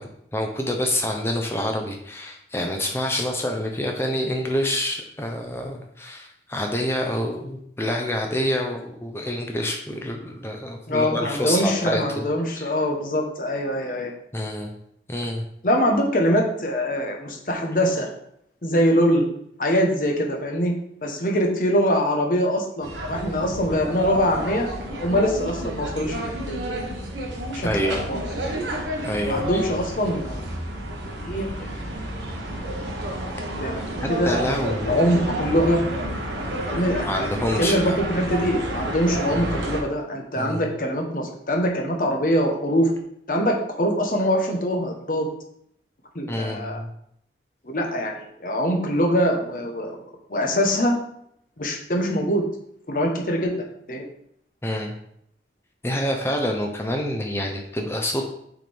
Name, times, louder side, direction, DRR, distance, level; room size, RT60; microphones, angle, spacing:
voice 1, 0.0-12.2 12.6-12.7 14.3-14.7 15.1-15.5 27.6-28.0 29.0-29.6 34.0-34.9 37.0-38.0 39.3-39.5 40.4-40.6 46.3-46.9 54.6-54.9 55.8-58.2, left 1 dB, 15° left, 2 dB, 0.6 m, -27 dB
voice 2, 10.9-14.1 15.6-18.1 18.6-19.3 19.6-20.7 21.0-24.7 25.0-26.6 27.5-28.2 29.3-30.5 31.2-31.5 33.6-34.4 34.9-35.8 36.7-37.3 37.6-42.9 43.3-45.3 46.1-46.8 47.6-50.0 50.3-51.0 51.6-52.4 52.9-53.5 53.9-54.0, equal, 50° left, 2 dB, 1.0 m, -23 dB
sound 1, 22.8-39.8, right 1 dB, 90° right, 1.3 m, -30 dB
6.2 x 4.4 x 3.5 m, 0.72 s
head